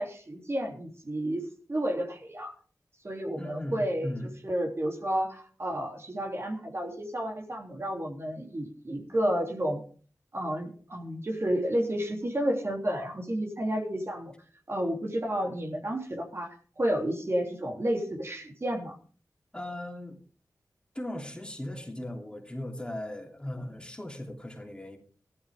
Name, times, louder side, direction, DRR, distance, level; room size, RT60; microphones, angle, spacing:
voice 1, 0.0-2.5 3.0-4.1 4.4-9.8 10.3-14.3 14.7-16.5 16.8-19.0, right 1 dB, 40° right, 1 dB, 3.2 m, -31 dB
voice 2, 3.4-4.4 19.5-20.2 20.9-25.0, left 1 dB, 15° left, 1 dB, 3.1 m, -38 dB
14.5 x 12.5 x 3.7 m, 0.43 s
wide cardioid pair, 60°, 6 cm